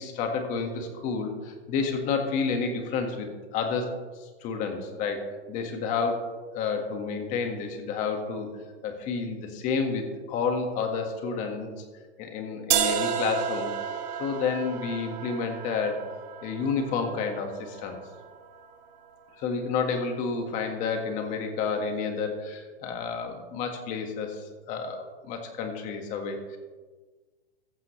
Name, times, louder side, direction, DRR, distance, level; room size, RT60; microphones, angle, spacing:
voice 1, 0.0-3.9 4.2-8.5 8.8-11.7 12.2-13.7 14.2-16.0 16.4-18.0 19.4-26.6, left 5 dB, 25° left, 4 dB, 1.6 m, -30 dB
sound 1, 12.7-18.7, right 9 dB, 40° right, 1.5 m, -32 dB
14.5 x 14.5 x 3.2 m, 1.4 s
hypercardioid pair, 165°, 33 cm